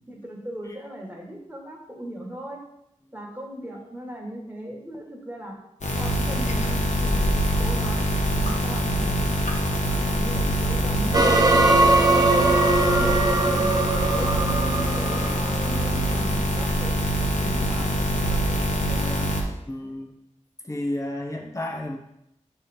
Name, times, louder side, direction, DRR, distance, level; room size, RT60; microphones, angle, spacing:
voice 1, 0.1-2.6 3.1-5.6 5.9-9.3 9.8-13.7 14.1-17.0 17.4-18.6 18.9-19.2, right 1 dB, 15° right, -1 dB, 1.7 m, -38 dB
sound 1, 5.8-19.4, equal, 65° left, 1.1 m, -24 dB
sound 2, 11.1-16.1, right 2 dB, 30° right, 0.7 m, -21 dB
voice 2, 19.7-20.2 20.6-22.0, left 1 dB, 25° left, 1 dB, 1.0 m, -31 dB
6.7 x 3.4 x 4.4 m, 0.80 s
cardioid pair, 45°, 13 cm